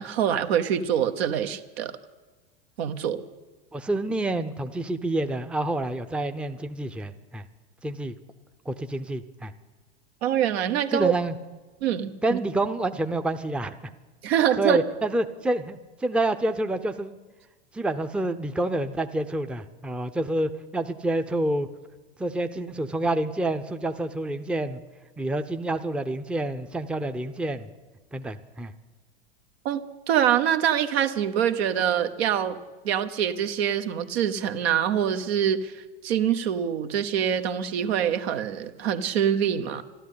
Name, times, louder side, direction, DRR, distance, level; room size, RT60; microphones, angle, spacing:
voice 1, 0.0-1.9 2.8-3.2 10.2-11.1 11.8-12.4 14.2-14.8 29.6-29.8 30.1-32.6 32.8-39.8, right 9 dB, 70° right, 8 dB, 1.2 m, -25 dB
voice 2, 3.7-7.4 7.8-8.1 8.7-9.5 10.9-11.3 12.2-13.8 14.6-17.1 17.7-21.7 22.2-24.8 25.2-27.7 28.1-28.7, right 1 dB, 5° right, 8 dB, 0.6 m, -28 dB
12.5 x 12.0 x 8.5 m, 1.3 s
hypercardioid pair, 95°, 32 cm